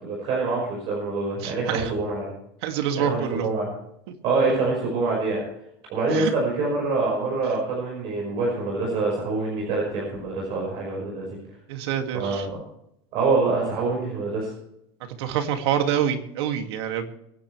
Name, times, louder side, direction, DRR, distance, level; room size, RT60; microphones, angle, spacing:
voice 1, 0.0-2.3 3.0-3.7 4.2-5.4 5.9-11.4 12.1-12.4 13.1-14.5, right 3 dB, 40° right, -3 dB, 5.6 m, -25 dB
voice 2, 1.4-1.9 2.6-3.5 6.1-6.3 11.7-12.4 15.2-17.1, right 9 dB, 80° right, 5 dB, 2.5 m, -26 dB
23.5 x 10.5 x 3.4 m, 0.79 s
cardioid pair, 175°, 14 cm